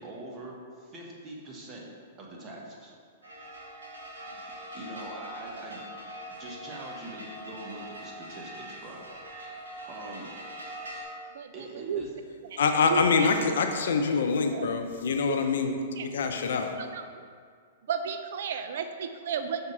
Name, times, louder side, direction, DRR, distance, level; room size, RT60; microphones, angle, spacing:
voice 1, 0.0-1.8 2.2-2.9 4.7-5.8 6.4-10.3 11.5-12.1, right 2 dB, 30° right, -2 dB, 1.4 m, -43 dB
sound 1, 3.2-11.0, equal, 85° right, 1.4 m, -42 dB
voice 2, 11.3-12.0 12.5-13.5 14.5-14.7 15.3-15.4 16.0-16.3 16.8-17.3 17.9-19.7, right 7 dB, 65° right, 8 dB, 0.3 m, -34 dB
voice 3, 12.6-16.7, left 5 dB, 70° left, 5 dB, 0.6 m, -25 dB
5.8 x 3.6 x 5.6 m, 2.1 s
hypercardioid pair, 115°, 0 cm